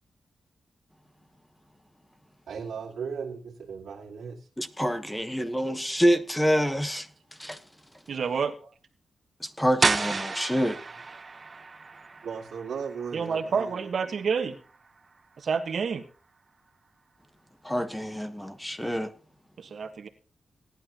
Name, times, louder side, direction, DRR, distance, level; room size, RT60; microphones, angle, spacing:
voice 1, 2.5-4.4 5.1-5.2 12.2-14.2, right 6 dB, 90° right, 2.1 m, -37 dB
voice 2, 4.6-7.1 7.4-7.6 9.4-10.8 17.6-19.1, equal, 5° left, 1.2 m, -27 dB
voice 3, 8.1-8.5 13.1-14.6 15.4-16.0 19.6-20.1, right 6 dB, 65° right, 1.5 m, -28 dB
sound 1, 9.8-15.4, right 4 dB, 35° right, 0.6 m, -32 dB
18.0 x 11.0 x 3.0 m
wide cardioid pair, 105°, 0 cm